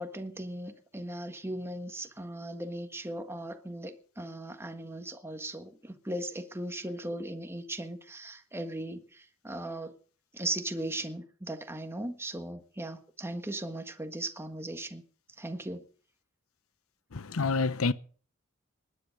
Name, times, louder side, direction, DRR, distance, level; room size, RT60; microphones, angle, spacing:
voice 1, 0.0-9.9 10.3-15.0 15.4-15.8, right 1 dB, 10° right, 1.5 m, -38 dB
voice 2, 17.1-17.9, left 4 dB, 85° left, 0.8 m, -28 dB
19.5 x 10.0 x 5.3 m
head